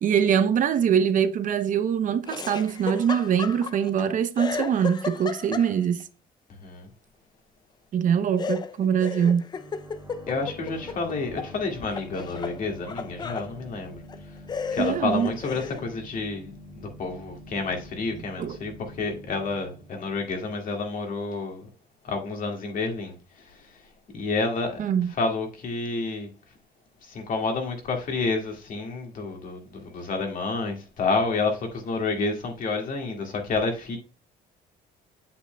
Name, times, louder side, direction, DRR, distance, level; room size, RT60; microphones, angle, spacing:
voice 1, 0.0-6.1 7.9-9.5 14.8-15.3 18.4-18.6 24.8-25.1, right 8 dB, 50° right, 0.7 m, -23 dB
Laughter, 2.3-4.0 4.4-6.0 8.4-11.5 11.8-13.5 14.1-14.2 14.5-15.8, left 5 dB, 25° left, 0.4 m, -34 dB
sound 1, 9.5-21.0, equal, 15° right, 1.8 m, -46 dB
voice 2, 10.3-14.0 14.7-16.5 16.8-21.7 22.0-23.2 24.1-24.8 25.2-26.3 27.1-34.0, left 3 dB, 55° left, 2.0 m, -29 dB
8.3 x 7.2 x 2.2 m
cardioid pair, 110°, 17 cm